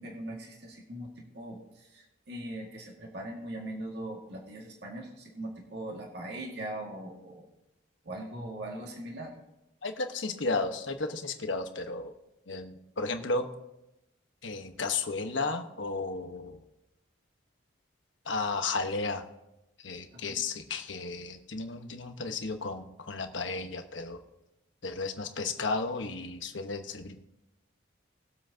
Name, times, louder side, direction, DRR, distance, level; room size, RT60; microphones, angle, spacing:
voice 1, 0.0-7.5 8.0-9.3 20.1-20.4, right 1 dB, 60° right, -1 dB, 2.0 m, -40 dB
voice 2, 9.8-12.1 12.5-13.5 14.4-16.6 18.2-19.2 19.8-24.2 24.8-27.1, left 3 dB, 80° left, 6 dB, 1.2 m, -33 dB
21.0 x 7.7 x 2.8 m, 0.93 s
head